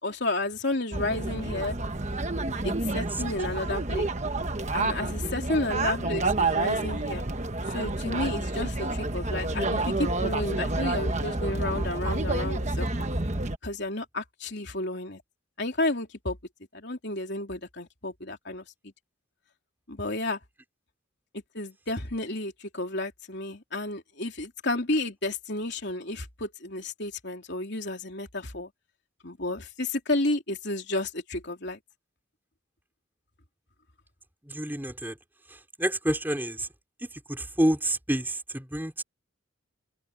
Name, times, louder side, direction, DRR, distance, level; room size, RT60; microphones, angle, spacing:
voice 1, 0.0-1.7 2.6-4.1 4.7-7.2 7.7-13.1 13.6-15.2 15.6-16.4 16.7-18.7 19.9-20.4 21.5-28.7 29.2-31.8, left 2 dB, 55° left, 3.6 m, -31 dB
sound 1, 0.9-13.6, right 2 dB, 35° right, 1.2 m, -29 dB
voice 2, 5.0-5.3 34.5-35.2 35.8-36.7 37.3-39.0, right 1 dB, 10° right, 4.1 m, -28 dB
head